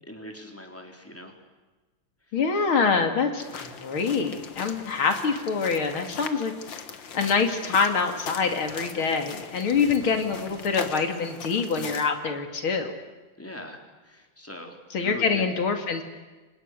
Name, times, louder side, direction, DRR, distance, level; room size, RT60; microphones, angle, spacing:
voice 1, 0.0-1.3 2.3-2.4 11.7-11.9 13.4-15.4, left 1 dB, 5° left, 3 dB, 3.9 m, -41 dB
voice 2, 2.3-6.5 7.1-13.0 14.9-16.0, left 5 dB, 85° left, 6 dB, 3.2 m, -25 dB
sound 1, 3.4-12.1, left 6 dB, 65° left, 2.3 m, -40 dB
30.0 x 25.5 x 6.6 m, 1.2 s
omnidirectional pair, 2.2 m